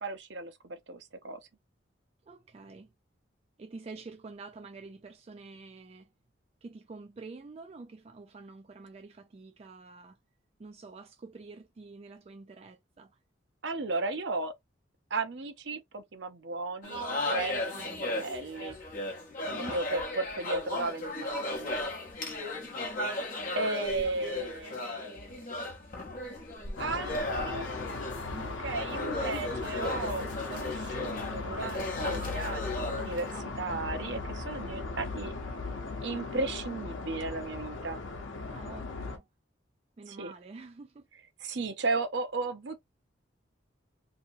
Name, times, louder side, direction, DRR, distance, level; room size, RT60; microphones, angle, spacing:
voice 1, 0.0-1.4 13.6-14.5 15.1-17.5 17.8-18.8 19.5-21.7 23.5-25.1 26.8-27.7 28.6-35.3 36.0-38.0 40.1-40.3 41.4-42.8, right 3 dB, 65° right, 0.6 m, -35 dB
voice 2, 2.2-2.9 3.6-6.1 6.6-10.2 10.6-13.2 17.7-18.3 19.5-19.8 21.1-21.8 22.5-22.8 28.3-28.6 35.2-35.8 38.5-39.3 40.0-41.0, right 3 dB, 30° right, 0.3 m, -48 dB
sound 1, 16.8-33.4, left 2 dB, 45° left, 0.7 m, -36 dB
sound 2, 26.8-39.2, left 3 dB, 85° left, 0.7 m, -38 dB
2.8 x 2.7 x 2.5 m
head